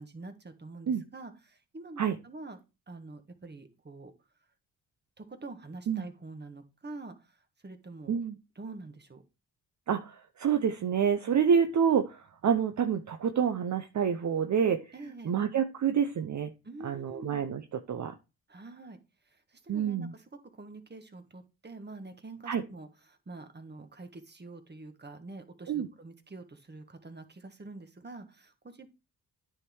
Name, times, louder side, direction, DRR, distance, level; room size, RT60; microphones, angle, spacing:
voice 1, 0.0-2.6 2.9-4.1 5.2-8.2 8.5-9.2 14.9-15.4 16.6-17.4 18.5-19.0 19.2-28.9, right 2 dB, 30° right, 7 dB, 1.6 m, -46 dB
voice 2, 9.9-14.9 15.2-16.5 16.8-17.6 17.9-18.1 19.7-20.1 22.5-22.6 25.7-25.9, right 7 dB, 50° right, 8 dB, 0.7 m, -28 dB
9.7 x 3.7 x 4.6 m, 0.28 s
cardioid pair, 60°, 36 cm